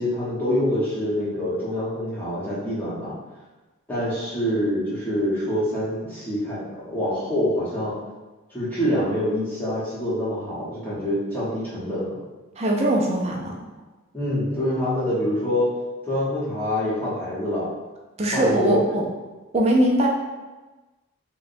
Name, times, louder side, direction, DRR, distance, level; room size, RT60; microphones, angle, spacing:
voice 1, 0.0-3.1 3.9-8.0 8.5-12.1 14.1-15.7 16.1-17.7 18.3-19.0, left 1 dB, 10° left, -10 dB, 1.0 m, -25 dB
voice 2, 12.6-13.6 18.2-19.0 19.5-20.1, right 1 dB, 30° right, 0 dB, 0.4 m, -21 dB
4.6 x 2.1 x 2.6 m, 1.2 s
head